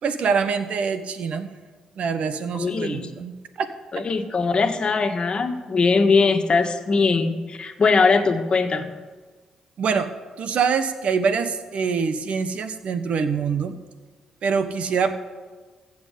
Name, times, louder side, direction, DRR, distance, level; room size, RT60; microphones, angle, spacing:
voice 1, 0.0-1.5 2.0-3.7 4.0-4.1 9.8-10.1 10.4-13.8 14.4-15.1, right 6 dB, 65° right, 10 dB, 1.2 m, -24 dB
voice 2, 2.5-3.1 3.9-8.9, left 4 dB, 45° left, 6 dB, 1.6 m, -21 dB
15.5 x 6.2 x 8.4 m, 1.4 s
supercardioid pair, 70°, 2 cm